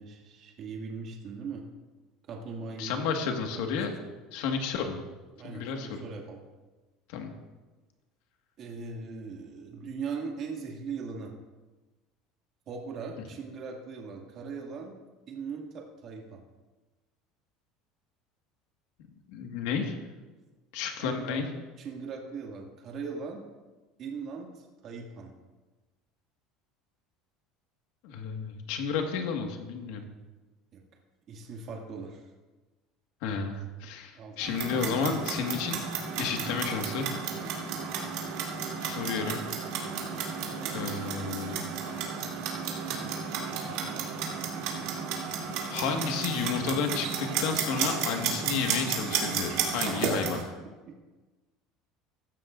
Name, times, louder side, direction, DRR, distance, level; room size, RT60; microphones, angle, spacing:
voice 1, 0.0-1.6 2.3-4.1 5.4-6.4 8.6-11.3 12.7-15.0 15.3-16.4 21.0-21.5 21.8-23.4 24.0-25.4 30.7-30.8 31.3-32.3 34.2-34.6 50.9-51.0, right 5 dB, 40° right, 0 dB, 2.1 m, -40 dB
voice 2, 2.8-3.9 4.3-5.0 5.4-6.1 7.1-7.3 19.3-20.0 20.7-21.5 28.0-30.1 33.2-35.8 36.2-37.1 38.8-39.4 40.7-41.6 45.7-50.4, left 6 dB, 75° left, 4 dB, 1.7 m, -31 dB
Clock, 34.4-50.4, right 6 dB, 70° right, 3.1 m, -33 dB
16.0 x 12.5 x 2.6 m, 1.2 s
cardioid pair, 145°, 0 cm